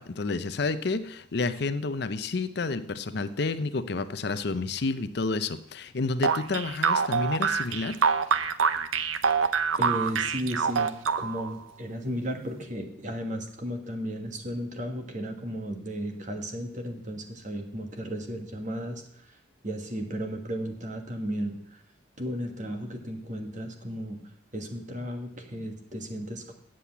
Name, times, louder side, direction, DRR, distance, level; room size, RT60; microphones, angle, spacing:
voice 1, 0.0-8.0, left 3 dB, 55° left, 12 dB, 0.5 m, -30 dB
sound 1, 6.2-11.5, right 6 dB, 80° right, 0.7 m, -25 dB
voice 2, 9.5-21.8 22.2-26.5, equal, 40° right, 4 dB, 1.5 m, -35 dB
8.4 x 7.7 x 8.3 m, 0.72 s
head